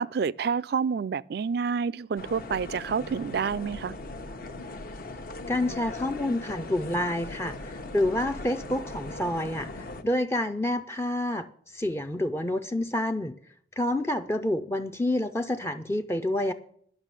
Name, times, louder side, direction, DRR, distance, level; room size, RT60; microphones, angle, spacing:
voice 1, 0.0-3.9, right 6 dB, 60° right, 0.4 m, -28 dB
sound 1, 2.2-10.0, left 2 dB, 55° left, 1.1 m, -39 dB
voice 2, 5.5-13.3 13.8-16.5, left 1 dB, 15° left, 0.5 m, -28 dB
11.0 x 6.0 x 8.9 m
head